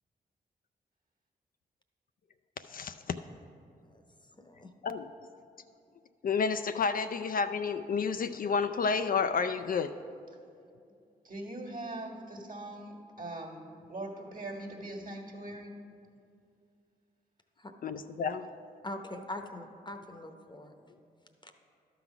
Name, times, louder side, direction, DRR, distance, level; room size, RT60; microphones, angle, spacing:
voice 1, 2.7-3.2 4.8-5.1 6.2-9.9 17.8-18.4, left 5 dB, 50° left, 9 dB, 0.4 m, -30 dB
voice 2, 4.4-4.7 17.6-17.7 18.8-20.8 21.4-21.5, left 1 dB, 25° left, 6 dB, 0.8 m, -42 dB
voice 3, 11.2-15.7, right 1 dB, 50° right, 1 dB, 1.6 m, -41 dB
12.0 x 4.0 x 5.9 m, 2.5 s
supercardioid pair, 40°, 18 cm